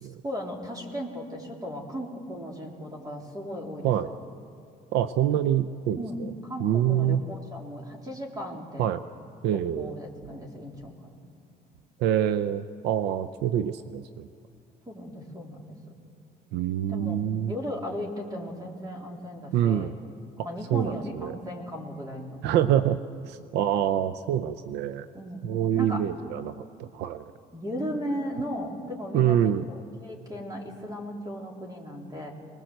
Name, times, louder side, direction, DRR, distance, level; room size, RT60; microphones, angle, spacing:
voice 1, 0.2-4.1 6.0-8.9 9.8-11.2 14.9-15.8 16.9-17.2 17.5-19.9 20.4-22.4 25.1-26.0 27.5-29.4 29.7-32.3, equal, 20° right, 0 dB, 3.6 m, -36 dB
voice 2, 4.9-6.3 6.6-7.2 8.8-9.0 9.4-9.9 12.0-14.3 16.5-17.5 19.5-19.9 20.7-21.3 22.4-23.0 23.3-25.1 25.4-27.3 29.1-29.7, right 10 dB, 85° right, 12 dB, 0.6 m, -26 dB
22.5 x 20.0 x 7.8 m, 2.5 s
cardioid pair, 110°, 17 cm